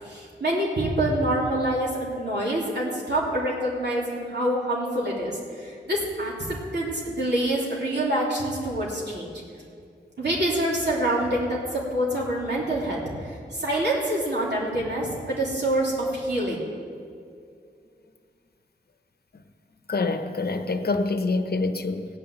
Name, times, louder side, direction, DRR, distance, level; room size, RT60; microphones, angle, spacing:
voice 1, 0.0-9.3 10.2-16.6, right 1 dB, 65° right, -4 dB, 3.2 m, -26 dB
voice 2, 19.9-22.1, left 3 dB, 60° left, 7 dB, 0.9 m, -26 dB
16.5 x 5.6 x 9.1 m, 2.4 s
wide cardioid pair, 60°, 18 cm